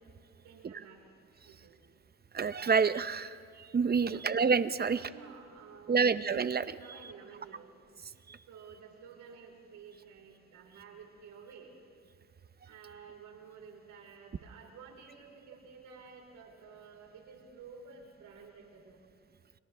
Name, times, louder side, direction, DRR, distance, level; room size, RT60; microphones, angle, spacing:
voice 1, 0.4-1.1 1.4-1.8 4.0-4.3 4.8-6.1 6.8-7.7 8.5-11.7 12.6-19.0, right 6 dB, 80° right, 0 dB, 4.8 m, -52 dB
voice 2, 2.3-5.0 5.9-6.8 8.3-8.4, right 5 dB, 30° right, 13 dB, 0.8 m, -28 dB
30.0 x 24.5 x 3.5 m, 2.4 s
cardioid pair, 90°, 30 cm